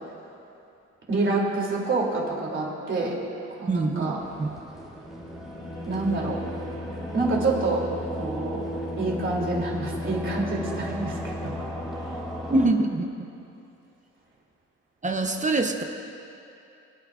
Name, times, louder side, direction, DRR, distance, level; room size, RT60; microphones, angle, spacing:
voice 1, 1.1-3.1 3.5-4.2 5.9-6.4 7.1-7.8 8.2-8.6 9.0-11.5, right 2 dB, 40° right, -3 dB, 2.9 m, -27 dB
voice 2, 3.7-4.1 4.4-4.5 12.5-13.1 15.0-15.8, right 2 dB, 25° right, 4 dB, 0.8 m, -24 dB
sound 1, 4.2-12.7, equal, ahead, 2.1 m, -34 dB
24.0 x 8.8 x 2.5 m, 2.7 s
cardioid pair, 90°, 30 cm